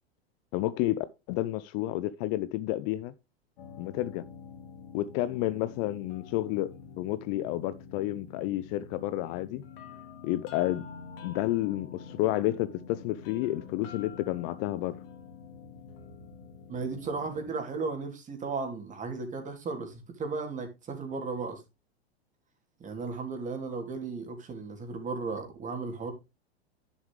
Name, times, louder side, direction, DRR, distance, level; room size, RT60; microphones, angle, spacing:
voice 1, 0.5-3.1 3.8-4.2 4.9-9.6 10.2-10.9 11.2-15.0, left 15 dB, 40° left, 0.6 m, -30 dB
sound 1, 3.6-17.5, left 5 dB, 60° left, 2.5 m, -47 dB
voice 2, 16.7-21.6 22.8-26.1, right 4 dB, 25° right, 2.9 m, -35 dB
10.5 x 7.1 x 3.2 m
hypercardioid pair, 95°, 32 cm